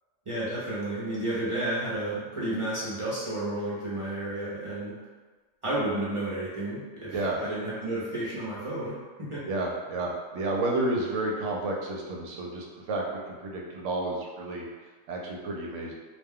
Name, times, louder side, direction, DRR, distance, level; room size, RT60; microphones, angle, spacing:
voice 1, 0.3-4.9 5.6-9.5, right 1 dB, 35° right, -9 dB, 0.5 m, -32 dB
voice 2, 9.5-14.7 15.1-15.9, right 2 dB, 70° right, -1 dB, 0.8 m, -31 dB
2.4 x 2.2 x 3.5 m, 1.4 s
omnidirectional pair, 1.4 m